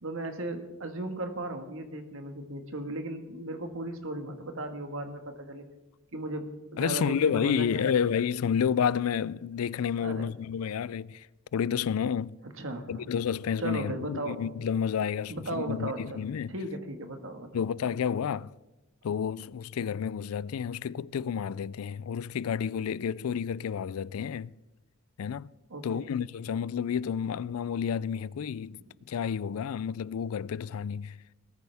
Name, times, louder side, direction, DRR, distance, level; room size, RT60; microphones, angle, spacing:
voice 1, 0.0-5.6 6.1-6.5 6.7-8.0 10.0-10.2 12.4-13.1 13.6-14.4 15.3-17.5 25.7-26.2 28.8-28.9, right 1 dB, 65° right, 1.7 m, -36 dB
voice 2, 6.8-11.3 11.5-12.4 12.9-16.5 17.5-18.5 19.0-24.5 25.2-25.5 25.8-28.8 29.1-31.2, left 7 dB, 90° left, 0.4 m, -30 dB
19.0 x 13.5 x 3.5 m
head